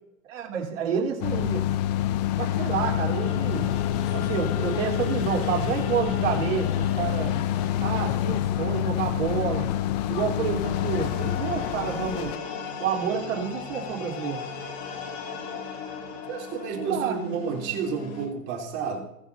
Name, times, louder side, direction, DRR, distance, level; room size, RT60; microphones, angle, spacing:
voice 1, 0.3-1.7 2.4-3.7 4.1-6.7 7.0-7.3 7.8-9.7 10.1-12.3 12.8-14.4 16.7-17.2, right 7 dB, 65° right, -1 dB, 3.7 m, -29 dB
sound 1, 1.2-12.4, left 12 dB, 30° left, 0.5 m, -27 dB
sound 2, 1.9-18.3, left 5 dB, 50° left, 2.6 m, -37 dB
voice 2, 16.3-19.0, right 5 dB, 35° right, -1 dB, 3.4 m, -31 dB
20.5 x 7.3 x 2.8 m, 0.85 s
hypercardioid pair, 145°, 41 cm